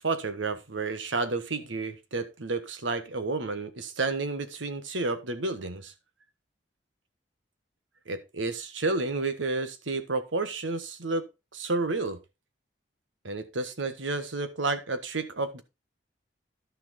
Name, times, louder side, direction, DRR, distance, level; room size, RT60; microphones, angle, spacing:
voice 1, 0.0-5.9 8.1-11.3 11.5-12.2 13.2-15.6, right 3 dB, 85° right, 1.4 m, -31 dB
11.5 x 6.5 x 3.7 m
head